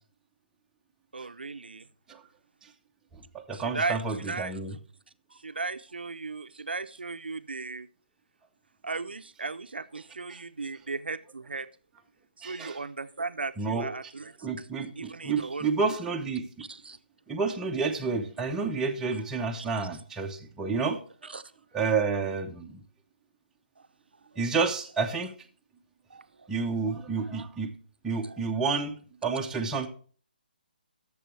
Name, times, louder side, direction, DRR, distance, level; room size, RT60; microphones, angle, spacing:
voice 1, 1.1-1.9 3.5-4.6 5.3-7.9 8.8-11.7 12.4-14.7 15.0-15.9 16.6-17.0 19.8-19.9 21.2-21.4 26.1-26.5 28.2-28.4, right 4 dB, 85° right, 11 dB, 0.6 m, -36 dB
voice 2, 3.3-4.8 10.3-10.4 12.4-12.8 13.6-13.9 14.4-16.5 17.3-21.0 21.7-22.8 24.4-25.3 26.5-27.7 28.0-29.0 29.2-29.9, right 4 dB, 10° right, 1 dB, 0.8 m, -30 dB
12.0 x 7.1 x 3.2 m, 0.43 s
figure-of-eight pair, 150°, 5 cm